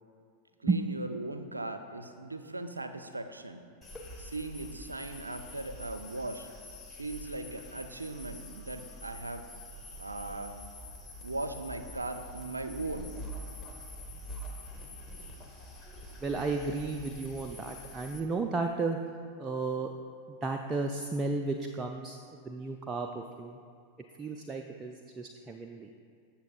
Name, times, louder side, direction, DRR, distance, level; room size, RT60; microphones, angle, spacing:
voice 1, 0.6-3.7 4.2-6.5 7.0-9.5 10.0-10.6 11.2-13.1, right 2 dB, 80° right, 8 dB, 0.5 m, -38 dB
sound 1, 3.8-18.2, equal, 10° left, 1.3 m, -46 dB
voice 2, 16.2-19.0 19.4-19.9 20.3-23.6 24.2-25.9, right 3 dB, 20° right, 3 dB, 0.4 m, -33 dB
14.0 x 7.0 x 2.4 m, 2.4 s
figure-of-eight pair, 90°, 0 cm